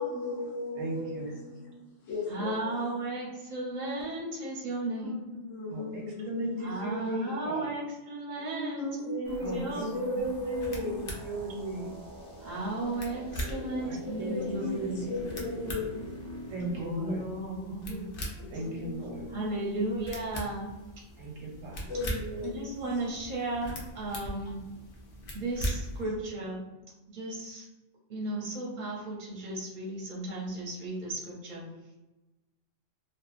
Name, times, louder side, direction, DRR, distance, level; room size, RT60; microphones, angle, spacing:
voice 1, 0.0-1.8 2.1-2.7 5.0-6.9 8.4-11.1 13.4-16.1 17.9-18.1 18.3-19.5 21.9-22.7, left 2 dB, 75° left, -4 dB, 1.2 m, -36 dB
voice 2, 0.8-1.3 5.7-7.7 9.4-9.9 10.2-10.6 11.2-11.9 13.8-15.2 16.5-17.2 18.5-19.3 21.2-21.9, right 2 dB, 90° right, 0 dB, 1.0 m, -36 dB
voice 3, 2.3-5.3 6.6-10.2 12.4-15.4 16.7-18.1 18.5-18.6 19.3-20.7 22.4-24.6 25.3-26.7 27.1-27.7 28.1-31.6, right 2 dB, 45° right, -4 dB, 0.6 m, -35 dB
sound 1, 9.2-16.7, equal, 10° left, 0.4 m, -45 dB
sound 2, 10.2-26.0, equal, 55° left, 0.7 m, -41 dB
2.8 x 2.3 x 2.4 m, 1.1 s
omnidirectional pair, 1.3 m